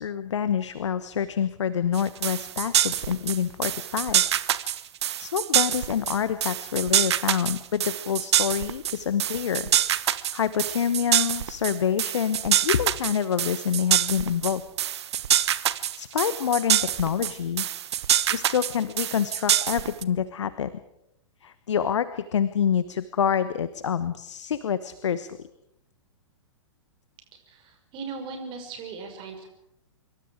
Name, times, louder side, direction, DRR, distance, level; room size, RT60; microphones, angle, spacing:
voice 1, 0.0-4.2 5.2-9.7 10.1-14.6 16.0-17.6 18.3-20.7 21.4-25.4, left 8 dB, 65° left, 14 dB, 1.1 m, -27 dB
sound 1, 1.9-20.0, right 11 dB, 55° right, 1.0 m, -25 dB
voice 2, 27.5-29.5, right 4 dB, 30° right, 4 dB, 5.8 m, -38 dB
26.0 x 23.5 x 5.0 m, 0.79 s
figure-of-eight pair, 110°, 17 cm